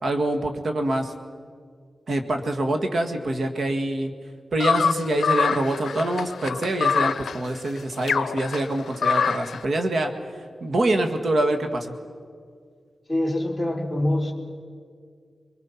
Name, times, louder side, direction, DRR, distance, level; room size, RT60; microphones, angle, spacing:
voice 1, 0.0-1.1 2.1-4.1 4.5-10.1 10.6-11.9, right 1 dB, 65° right, 5 dB, 1.9 m, -25 dB
sound 1, 4.6-9.6, left 6 dB, 85° left, 0.5 m, -25 dB
voice 2, 13.1-14.3, left 1 dB, ahead, -2 dB, 3.6 m, -24 dB
25.5 x 22.5 x 5.9 m, 2.1 s
wide cardioid pair, 90°, 0 cm